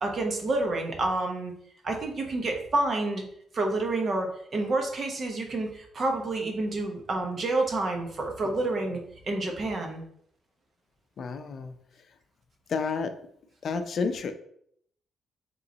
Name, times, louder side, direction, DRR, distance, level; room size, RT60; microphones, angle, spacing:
voice 1, 0.0-1.5 1.8-3.2 3.5-9.0 9.2-10.0, right 2 dB, 45° right, 3 dB, 1.0 m, -28 dB
voice 2, 11.2-11.8 12.7-13.1 13.6-14.3, left 5 dB, 55° left, 8 dB, 0.5 m, -30 dB
3.8 x 3.1 x 4.0 m, 0.68 s
cardioid pair, 90°, 0 cm